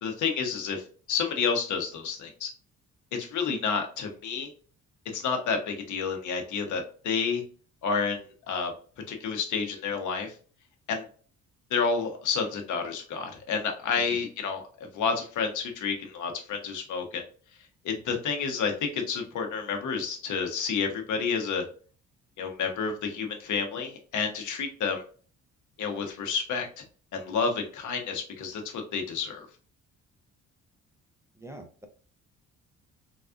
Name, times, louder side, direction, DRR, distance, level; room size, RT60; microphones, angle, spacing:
voice 1, 0.0-2.5 3.2-4.5 5.1-7.4 7.8-8.7 9.1-10.3 10.9-11.0 11.7-17.2 17.8-21.6 22.4-25.0 25.8-26.8 27.1-29.5, left 5 dB, 75° left, 3 dB, 1.0 m, -30 dB
voice 2, 31.3-31.9, right 1 dB, 10° right, 4 dB, 0.6 m, -45 dB
4.0 x 2.3 x 2.4 m, 0.41 s
cardioid pair, 90°, 30 cm